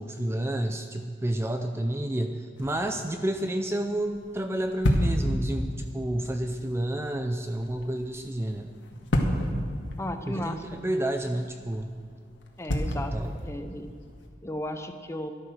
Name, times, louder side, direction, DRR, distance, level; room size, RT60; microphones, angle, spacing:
voice 1, 0.0-8.7 10.3-11.9 13.0-13.3, right 1 dB, 15° right, 6 dB, 0.5 m, -30 dB
sound 1, 2.5-14.3, equal, 85° left, 1.8 m, -32 dB
voice 2, 10.0-10.8 12.6-13.9 14.4-15.3, left 1 dB, 15° left, 8 dB, 0.8 m, -35 dB
13.0 x 11.5 x 6.4 m, 2.1 s
head